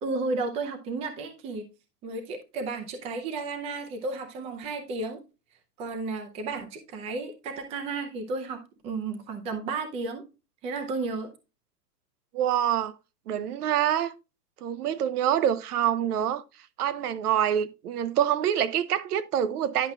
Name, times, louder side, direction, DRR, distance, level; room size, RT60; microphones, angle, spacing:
voice 1, 0.0-1.7 2.0-5.2 5.8-10.2 10.6-11.3, right 3 dB, 15° right, 0.5 m, -33 dB
voice 2, 12.3-12.9 13.3-14.1 14.6-16.4 16.8-19.9, right 10 dB, 70° right, 0.8 m, -26 dB
10.5 x 5.4 x 2.3 m
hypercardioid pair, 135°, 48 cm